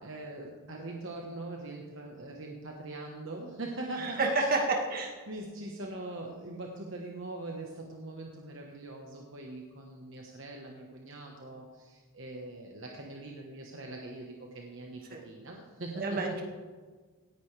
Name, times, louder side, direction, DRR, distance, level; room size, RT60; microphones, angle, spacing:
voice 1, 0.0-4.7 5.3-16.4, right 2 dB, 60° right, 0 dB, 1.2 m, -42 dB
voice 2, 4.0-5.1 15.1-15.2 16.0-16.4, right 3 dB, 40° right, 0 dB, 1.9 m, -29 dB
17.5 x 10.5 x 3.4 m, 1.4 s
head